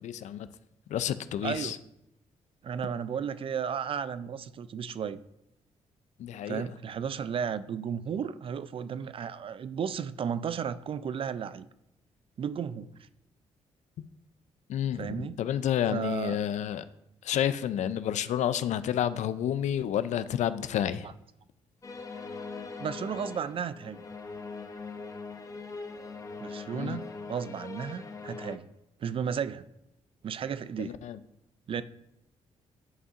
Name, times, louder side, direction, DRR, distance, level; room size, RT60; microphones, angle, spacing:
voice 1, 0.0-0.5 0.9-1.8 6.2-6.7 14.7-16.8 17.2-21.1 26.7-27.0 30.8-31.2, left 10 dB, 70° left, 14 dB, 0.4 m, -30 dB
voice 2, 1.4-1.7 2.6-5.2 6.5-11.7 12.4-12.9 15.0-15.4 15.9-16.4 22.8-24.0 26.4-28.7 29.0-29.7 30.2-31.0 31.7-31.8, right 7 dB, 45° right, 14 dB, 0.4 m, -34 dB
sound 1, 21.8-28.6, left 4 dB, 25° left, 0.7 m, -41 dB
9.7 x 5.3 x 2.5 m, 0.84 s
cardioid pair, 85°, 13 cm